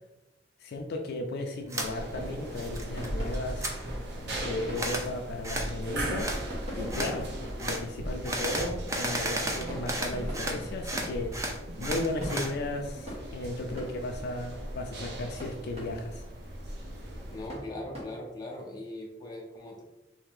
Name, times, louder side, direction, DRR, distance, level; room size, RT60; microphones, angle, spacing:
voice 1, 0.6-3.8 4.2-6.3 6.8-7.3 7.6-11.3 11.8-16.2, left 2 dB, 60° left, 3 dB, 0.4 m, -35 dB
sound 1, 1.7-1.9 2.3-3.1 3.3-3.7 4.7-5.1 5.4-5.7 6.2-6.4 6.9-7.1 7.6-7.8 8.2-10.6 10.8-12.5, right 1 dB, 15° right, 0.5 m, -33 dB
sound 2, 1.8-17.5, right 1 dB, 60° right, 0.8 m, -38 dB
sound 3, 2.9-18.0, equal, 35° right, 1.3 m, -45 dB
voice 2, 17.3-19.8, left 1 dB, 20° left, -2 dB, 0.7 m, -40 dB
3.3 x 2.7 x 3.5 m, 0.98 s
head